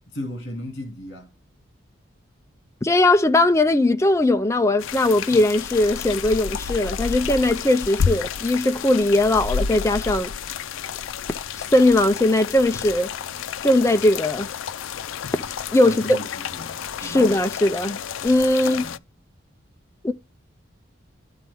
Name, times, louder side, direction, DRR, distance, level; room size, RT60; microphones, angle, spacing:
voice 1, 0.1-1.3 15.8-17.3 18.6-19.0, left 1 dB, 50° left, 2.4 m, -36 dB
voice 2, 2.8-10.3 11.6-13.1 13.6-14.5 15.3-15.4 15.7-16.2 17.0-18.8 20.0-20.1, left 1 dB, 15° left, 0.4 m, -19 dB
sound 1, 4.8-19.0, left 6 dB, 85° left, 0.4 m, -30 dB
12.5 x 4.3 x 3.4 m
head